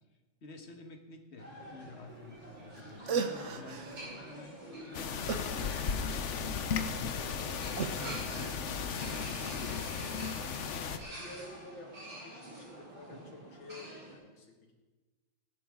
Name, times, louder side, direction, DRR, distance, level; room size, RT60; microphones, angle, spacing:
voice 1, 0.4-7.4 8.0-10.0, left 2 dB, 40° left, 4 dB, 1.5 m, -51 dB
sound 1, 1.4-14.2, right 1 dB, 70° right, 5.8 m, -48 dB
sound 2, 2.8-2.9 3.1-4.1 5.3-6.3 7.8-8.6, right 5 dB, 50° right, 1.0 m, -36 dB
sound 3, 4.9-11.0, left 6 dB, 55° left, 0.8 m, -35 dB
voice 2, 11.0-14.7, left 2 dB, 85° left, 1 dB, 2.6 m, -51 dB
18.0 x 11.5 x 3.7 m, 1.2 s
omnidirectional pair, 2.0 m